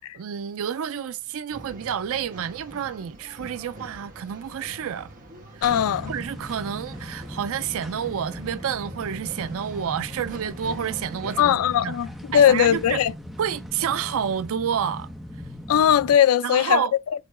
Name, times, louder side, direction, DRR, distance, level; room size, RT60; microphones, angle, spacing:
voice 1, 0.1-5.1 5.5-5.6 6.1-12.0 12.3-13.0 13.4-15.1 16.4-16.9, right 8 dB, 65° right, 0.4 m, -29 dB
Male speech man speaking / Chatter / Rattle, 1.5-11.5, right 2 dB, 40° right, 1.6 m, -44 dB
voice 2, 5.6-6.1 11.4-12.1 12.3-13.1 15.7-16.8, left 9 dB, 75° left, 0.3 m, -19 dB
sound 1, 5.6-16.2, left 1 dB, ahead, 0.8 m, -39 dB
6.5 x 3.0 x 4.8 m
head